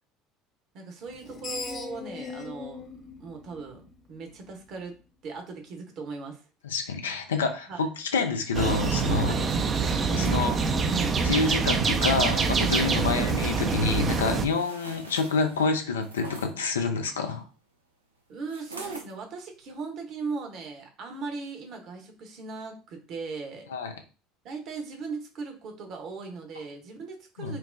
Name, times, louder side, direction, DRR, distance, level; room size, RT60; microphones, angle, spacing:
voice 1, 0.7-2.8 3.2-6.5 7.7-7.8 9.3-9.5 12.9-13.1 18.3-23.7 24.4-27.6, right 4 dB, 50° right, 4 dB, 1.0 m, -38 dB
Screech, 1.1-4.3, left 5 dB, 35° left, 0.6 m, -40 dB
voice 2, 6.6-9.3 10.1-10.6 11.2-17.4 23.7-23.9 27.4-27.6, left 4 dB, 80° left, 6 dB, 0.5 m, -27 dB
sound 1, 8.5-14.5, right 5 dB, 35° right, 0.5 m, -25 dB
sound 2, 12.5-16.5 18.5-19.1 19.6-19.8, right 2 dB, 90° right, 0.6 m, -45 dB
4.4 x 2.1 x 2.6 m, 0.33 s
figure-of-eight pair, 65°, 0 cm